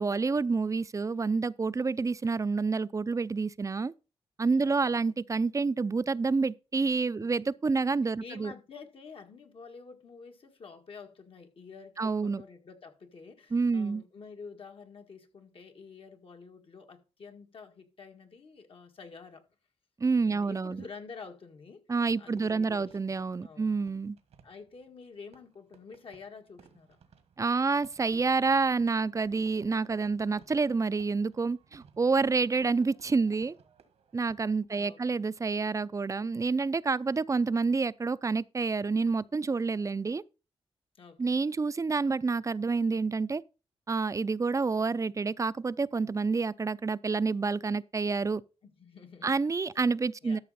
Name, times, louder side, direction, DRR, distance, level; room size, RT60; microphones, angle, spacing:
voice 1, 0.0-3.9 4.4-8.5 12.0-12.4 13.5-14.0 20.0-20.8 21.9-24.2 27.4-33.6 34.1-40.2 41.2-43.4 43.9-48.4 49.2-50.4, right 4 dB, 30° right, 0.5 m, -28 dB
voice 2, 4.6-5.1 7.2-7.6 8.2-19.5 20.3-21.9 22.2-23.8 24.4-27.0 34.7-35.2 41.0-41.3 48.6-49.4 50.2-50.4, left 5 dB, 60° left, 1.8 m, -49 dB
Fireworks, 22.1-34.8, right 6 dB, 85° right, 1.6 m, -61 dB
13.0 x 6.2 x 4.1 m
cardioid pair, 65°, 10 cm